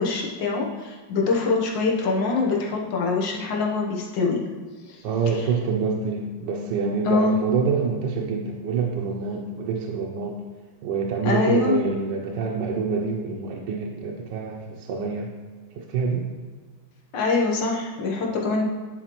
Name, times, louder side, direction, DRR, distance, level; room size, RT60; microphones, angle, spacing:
voice 1, 0.0-4.4 4.9-5.4 7.1-7.4 11.2-11.8 17.1-18.6, left 4 dB, 75° left, -1 dB, 1.8 m, -24 dB
voice 2, 5.0-10.4 10.8-15.3 15.7-16.3, right 5 dB, 75° right, 0 dB, 1.3 m, -26 dB
10.5 x 4.6 x 3.0 m, 1.5 s
omnidirectional pair, 2.0 m